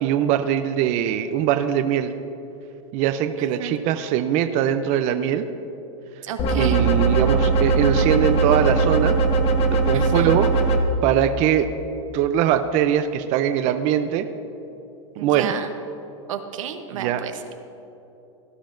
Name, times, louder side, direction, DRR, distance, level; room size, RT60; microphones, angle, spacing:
voice 1, 0.0-2.2 2.9-5.5 6.6-9.2 9.7-11.7 12.1-14.3 15.2-15.5 16.9-17.2, right 10 dB, 45° right, 9 dB, 0.5 m, -22 dB
voice 2, 6.2-6.8 9.9-10.3 15.2-15.7 16.3-17.5, right 9 dB, 85° right, 7 dB, 0.9 m, -32 dB
sound 1, 6.4-10.8, right 3 dB, 35° left, 1.1 m, -20 dB
17.0 x 11.5 x 2.6 m, 2.9 s
supercardioid pair, 125°, 16 cm